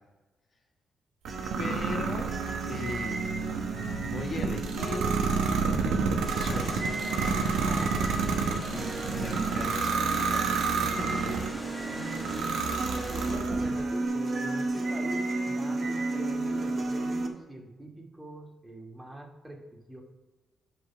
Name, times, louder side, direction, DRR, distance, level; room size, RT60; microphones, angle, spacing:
sound 1, 1.3-17.3, right 3 dB, 45° right, 1.5 m, -34 dB
sound 2, 1.3-11.6 12.1-13.8, right 4 dB, 85° right, 1.1 m, -30 dB
voice 1, 1.6-2.4 2.7-3.6 4.0-5.1 6.4-7.0 7.4-7.7 8.7-11.5 11.9-12.6, left 3 dB, 50° left, 1 dB, 1.4 m, -39 dB
sound 3, 6.2-13.4, left 1 dB, 15° left, 1.9 m, -43 dB
voice 2, 7.5-7.9 13.1-20.0, right 1 dB, 15° right, -1 dB, 2.3 m, -43 dB
8.1 x 5.4 x 5.9 m, 1.1 s
cardioid pair, 70°, 0 cm